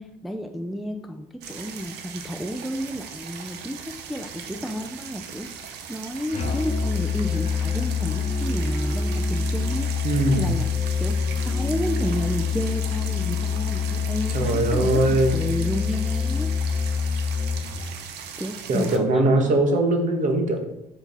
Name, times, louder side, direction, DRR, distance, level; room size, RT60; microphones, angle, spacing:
voice 1, 0.0-5.5 5.9-9.9 10.4-10.7 11.0-15.0 15.3-16.5 18.4-19.6, equal, ahead, 4 dB, 0.4 m, -31 dB
sound 1, 1.4-19.0, right 7 dB, 80° right, 0.8 m, -39 dB
Musical instrument, 6.3-18.0, left 5 dB, 35° left, 1.0 m, -26 dB
voice 2, 10.0-10.5 14.3-15.4 18.7-20.6, right 2 dB, 50° right, 4 dB, 1.2 m, -21 dB
5.4 x 4.7 x 4.0 m, 0.85 s
cardioid pair, 110°, 17 cm